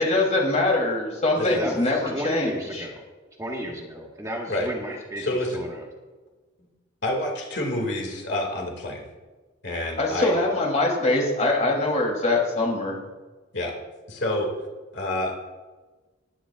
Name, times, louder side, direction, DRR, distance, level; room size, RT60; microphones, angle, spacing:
voice 1, 0.0-2.9 10.0-13.0, left 2 dB, 40° left, -1 dB, 3.3 m, -23 dB
voice 2, 1.5-3.0 3.4-5.8, equal, 15° right, -1 dB, 1.6 m, -34 dB
voice 3, 5.2-5.6 7.0-9.1 9.6-10.4 13.5-13.7 14.1-14.5 14.9-15.4, left 1 dB, 65° left, 0 dB, 2.4 m, -28 dB
20.0 x 10.0 x 2.5 m, 1.3 s
head